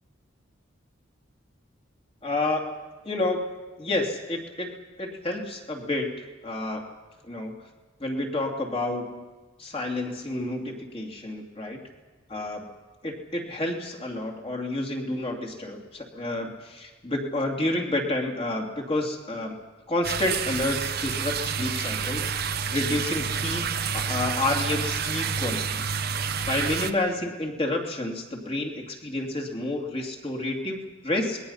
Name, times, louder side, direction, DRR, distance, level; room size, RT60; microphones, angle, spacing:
voice 1, 2.2-2.7 3.0-6.1 6.4-6.8 7.3-7.5 8.0-9.3 9.6-11.8 12.3-12.7 13.0-19.6 19.9-25.8 26.5-31.4, left 2 dB, 30° left, 1 dB, 2.7 m, -30 dB
sound 1, 20.0-26.9, right 6 dB, 50° right, 1.0 m, -29 dB
27.5 x 21.0 x 5.7 m, 1.2 s
head